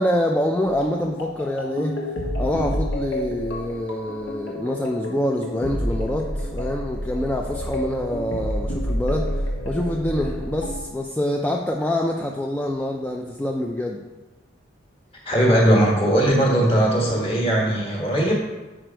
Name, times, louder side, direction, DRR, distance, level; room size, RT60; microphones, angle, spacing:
voice 1, 0.0-2.0 2.4-14.0 17.2-17.3, left 1 dB, 10° left, 0 dB, 0.3 m, -26 dB
sound 1, 0.6-10.8, equal, 75° left, 1.2 m, -29 dB
voice 2, 15.2-18.3, right 1 dB, 30° left, -2 dB, 1.5 m, -19 dB
6.4 x 5.0 x 4.5 m, 1.1 s
head